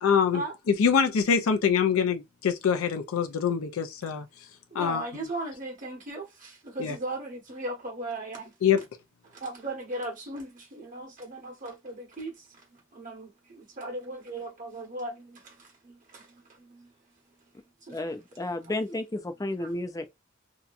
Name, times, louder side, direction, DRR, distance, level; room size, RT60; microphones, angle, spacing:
voice 1, 0.0-4.3 4.7-5.0 6.8-7.0 8.6-8.8, left 7 dB, 90° left, 0.4 m, -24 dB
voice 2, 4.7-8.5 9.3-12.6 12.9-16.9 17.9-18.0 19.6-19.7, right 2 dB, 40° right, 1.1 m, -38 dB
voice 3, 17.9-20.1, left 2 dB, 15° left, 0.4 m, -32 dB
2.7 x 2.2 x 2.4 m
head